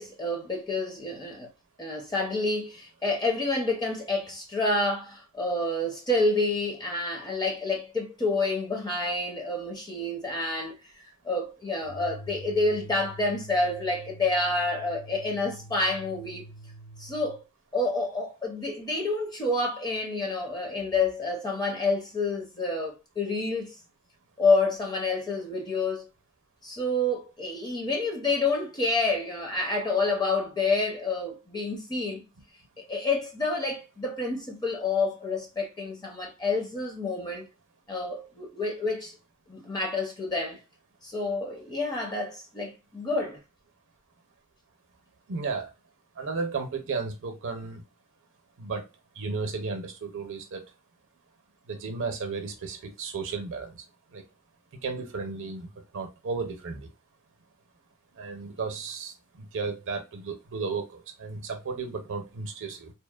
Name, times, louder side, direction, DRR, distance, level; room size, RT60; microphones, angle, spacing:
voice 1, 0.0-1.5 1.8-10.8 11.2-16.5 17.0-17.4 17.7-23.8 24.4-26.1 26.6-32.2 32.8-37.5 37.9-39.1 39.5-40.6 41.0-43.4, left 2 dB, 20° left, 0.5 m, -28 dB
sound 1, 11.8-17.4, equal, 85° left, 0.6 m, -46 dB
voice 2, 45.3-45.7 46.2-47.8 48.6-48.9 49.2-50.7 51.7-53.8 54.1-54.2 54.8-56.9 58.1-62.9, right 4 dB, 60° right, 0.6 m, -34 dB
2.8 x 2.0 x 2.3 m
head